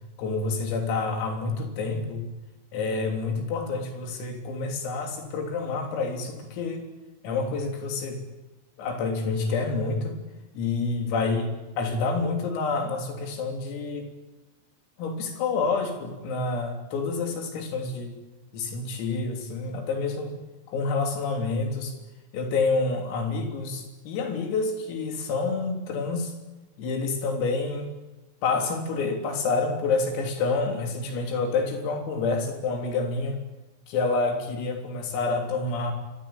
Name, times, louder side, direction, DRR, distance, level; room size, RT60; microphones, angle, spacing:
voice 1, 0.2-2.3 2.7-6.9 7.2-8.2 8.8-10.2 10.6-11.5 11.8-14.1 15.0-18.2 18.5-20.3 20.7-22.0 22.3-26.3 26.8-27.9 28.4-33.4 33.9-35.9, left 3 dB, 85° left, 3 dB, 6.0 m, -28 dB
26.5 x 23.5 x 8.9 m, 1.1 s
omnidirectional pair, 5.9 m